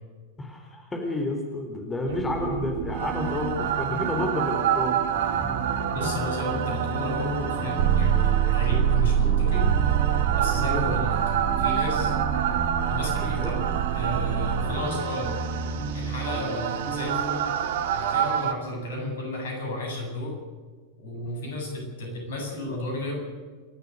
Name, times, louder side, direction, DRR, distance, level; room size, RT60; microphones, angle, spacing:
voice 1, 0.4-5.0 10.5-11.0 13.4-13.8, left 2 dB, 15° left, 2 dB, 4.1 m, -30 dB
sound 1, 2.1-18.5, right 9 dB, 55° right, 1.7 m, -26 dB
sound 2, 5.1-17.4, right 3 dB, 10° right, 3.3 m, -34 dB
voice 2, 5.9-9.6 10.4-11.2 11.6-12.1 12.9-13.7 13.9-15.3 15.9-17.5 17.9-20.4 21.0-23.2, left 1 dB, 60° left, 2 dB, 7.9 m, -32 dB
29.0 x 13.5 x 6.7 m, 1.4 s
figure-of-eight pair, 90°, 0 cm